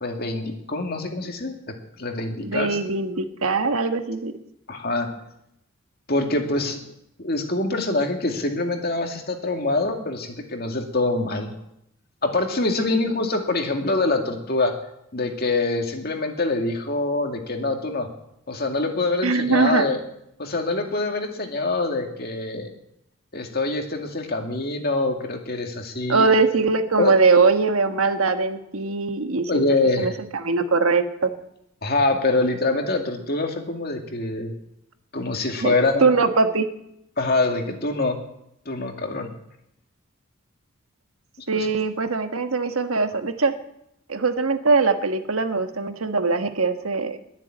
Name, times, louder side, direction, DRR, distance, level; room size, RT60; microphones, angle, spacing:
voice 1, 0.0-2.8 4.7-5.1 6.1-6.8 7.2-11.5 12.2-14.7 15.1-18.1 18.5-20.0 20.4-22.7 23.3-26.3 27.0-27.2 28.8-28.9 29.5-30.1 31.8-34.5 35.1-36.0 37.2-38.2 38.7-39.3 41.4-41.7, left 2 dB, 45° left, 4 dB, 2.2 m, -25 dB
voice 2, 2.4-4.3 19.2-19.9 26.1-29.6 30.0-31.3 35.6-35.7 36.0-36.7 41.5-43.5 44.1-47.2, right 4 dB, 85° right, 8 dB, 1.4 m, -21 dB
21.5 x 7.5 x 8.9 m, 0.80 s
head